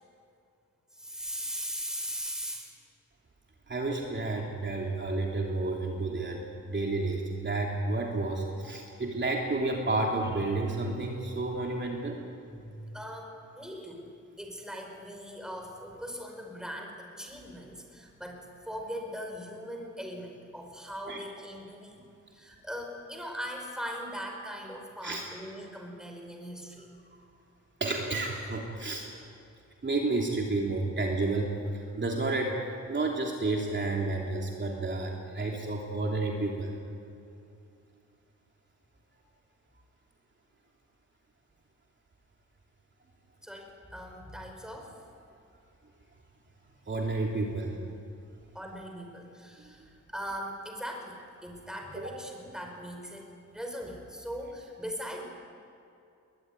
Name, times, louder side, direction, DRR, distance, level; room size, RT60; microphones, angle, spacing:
voice 1, 0.9-2.7 8.6-8.7 12.5-14.1 14.4-22.0 22.3-26.9 43.4-45.1 48.5-55.2, equal, ahead, 2 dB, 5.3 m, -40 dB
voice 2, 3.7-12.2 21.1-21.2 25.0-25.2 27.8-29.1 29.8-31.5 32.0-32.6 32.9-36.7 46.9-47.8 49.6-49.9 52.0-52.1, right 2 dB, 35° right, -1 dB, 3.1 m, -31 dB
22.0 x 20.0 x 9.9 m, 2.5 s
cardioid pair, 105°, 31 cm